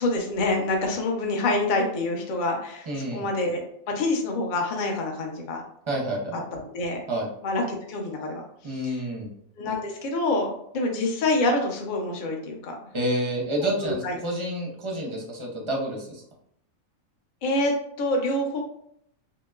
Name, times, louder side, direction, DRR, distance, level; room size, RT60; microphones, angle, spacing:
voice 1, 0.0-3.6 3.9-5.6 6.3-7.0 7.4-8.4 8.8-9.0 9.6-12.8 13.8-14.2 17.4-17.7 18.0-18.6, left 2 dB, 55° left, 1 dB, 0.5 m, -26 dB
voice 2, 2.9-3.3 5.9-6.4 7.1-7.3 8.6-9.3 12.9-16.2, right 1 dB, 35° right, -2 dB, 0.5 m, -29 dB
2.9 x 2.8 x 2.3 m, 0.71 s
omnidirectional pair, 1.5 m